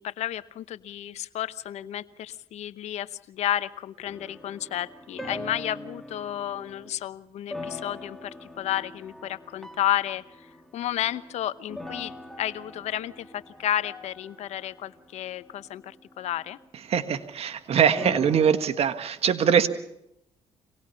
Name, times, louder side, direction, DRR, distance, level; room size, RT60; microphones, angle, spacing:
voice 1, 0.0-16.6, left 12 dB, 75° left, 15 dB, 0.9 m, -32 dB
sound 1, 4.1-7.0 7.5-16.6 18.0-18.5, left 1 dB, 5° left, 2.5 m, -43 dB
voice 2, 16.9-19.7, right 7 dB, 60° right, 11 dB, 1.6 m, -22 dB
25.0 x 18.5 x 5.7 m, 0.79 s
cardioid pair, 75°, 11 cm